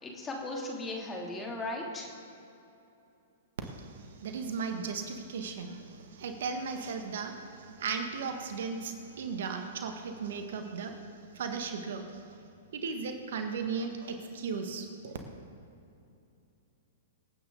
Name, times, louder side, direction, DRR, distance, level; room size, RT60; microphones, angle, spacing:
voice 1, 0.0-2.1, left 2 dB, 20° left, -1 dB, 3.0 m, -37 dB
voice 2, 4.2-5.8 6.2-7.3 7.6-11.0 11.4-12.0 12.7-14.8, right 5 dB, 65° right, 5 dB, 1.7 m, -36 dB
26.0 x 9.1 x 4.0 m, 2.8 s
hypercardioid pair, 115°, 0 cm